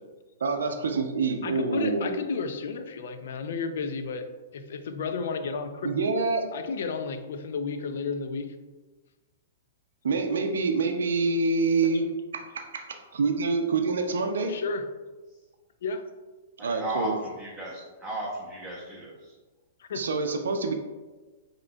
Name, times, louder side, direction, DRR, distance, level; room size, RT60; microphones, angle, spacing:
voice 1, 0.4-2.2 5.8-6.4 10.0-14.6 16.6-17.1 19.9-20.7, right 4 dB, 85° right, 5 dB, 0.4 m, -26 dB
voice 2, 1.4-4.3 4.5-5.9 6.5-8.5 11.8-12.0 14.5-14.9 15.8-16.1 19.8-20.0, left 4 dB, 70° left, 9 dB, 0.4 m, -32 dB
voice 3, 16.6-19.3, right 1 dB, 5° right, -7 dB, 0.7 m, -35 dB
4.9 x 2.9 x 2.3 m, 1.3 s
hypercardioid pair, 145°, 0 cm